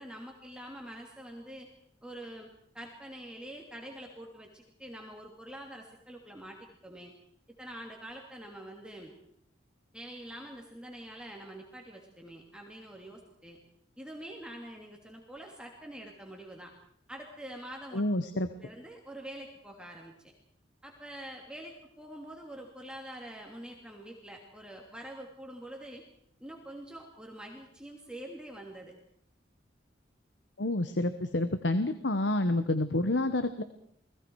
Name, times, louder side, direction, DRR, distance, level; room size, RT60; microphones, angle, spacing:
voice 1, 0.0-1.7 2.0-2.5 2.7-7.1 7.6-9.1 9.9-13.6 14.0-16.7 17.1-18.0 18.3-20.3 20.8-26.0 26.4-28.9, right 1 dB, 5° right, 0 dB, 2.9 m, -45 dB
voice 2, 17.9-18.5 30.6-33.6, left 1 dB, 75° left, 10 dB, 1.2 m, -28 dB
29.5 x 20.5 x 4.8 m, 0.69 s
head